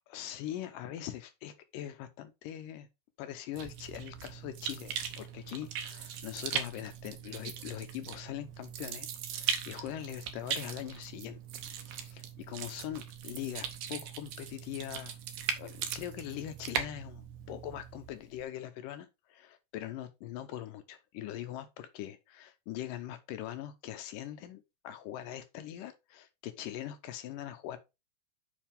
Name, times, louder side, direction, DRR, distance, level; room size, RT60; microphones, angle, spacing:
voice 1, 0.1-2.9 3.2-11.4 11.8-15.2 15.6-27.8, left 12 dB, 75° left, 2.2 m, -42 dB
sound 1, 3.5-18.4, right 8 dB, 65° right, 2.2 m, -39 dB
7.5 x 5.5 x 3.5 m
omnidirectional pair, 4.2 m